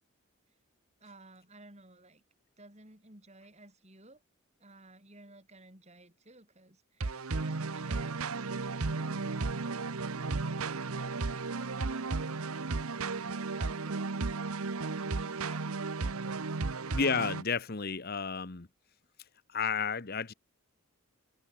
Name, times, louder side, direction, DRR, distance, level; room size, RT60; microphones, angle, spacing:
voice 1, 1.0-2.2 2.6-4.2 4.6-9.9 10.2-12.5 13.0-14.0 14.8-15.6, right 2 dB, 30° right, 5.6 m, -55 dB
sound 1, 7.0-17.4, right 3 dB, 80° right, 1.0 m, -34 dB
voice 2, 16.9-18.7 19.5-20.3, left 5 dB, 45° left, 1.1 m, -31 dB
head